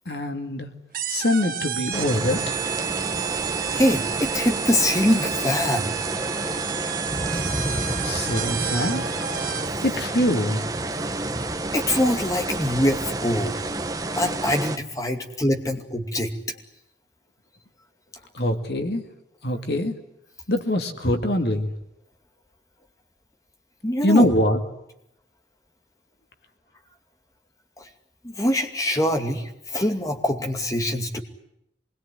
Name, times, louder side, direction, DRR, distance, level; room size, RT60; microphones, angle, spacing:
voice 1, 0.1-0.7 1.1-2.6 8.0-9.0 9.8-10.7 18.3-19.0 19.4-20.0 20.5-21.7 24.0-24.6, left 1 dB, 65° left, 6 dB, 2.3 m, -23 dB
sound 1, 0.9-9.9, right 8 dB, 50° right, 1.6 m, -31 dB
sound 2, 1.9-14.8, right 2 dB, 20° right, 1.0 m, -29 dB
voice 2, 3.7-5.9 11.7-13.5 14.2-16.3 23.8-24.5 27.8-27.9 28.2-31.2, left 1 dB, 20° left, 4 dB, 2.4 m, -24 dB
26.0 x 21.5 x 9.9 m, 0.82 s
head